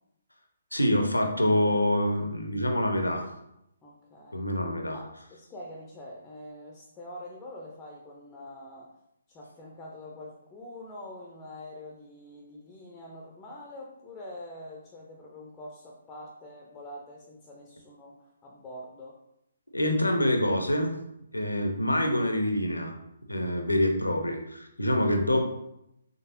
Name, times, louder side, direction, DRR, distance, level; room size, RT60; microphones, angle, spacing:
voice 1, 0.7-3.3 4.3-5.0 19.7-21.0 21.3-22.9 23.3-25.4, left 1 dB, 80° left, 4 dB, 0.7 m, -26 dB
voice 2, 3.8-4.5 4.9-8.9 9.3-19.2, left 1 dB, 15° left, -2 dB, 0.5 m, -45 dB
3.9 x 3.3 x 2.7 m, 0.81 s
figure-of-eight pair, 135°, 0 cm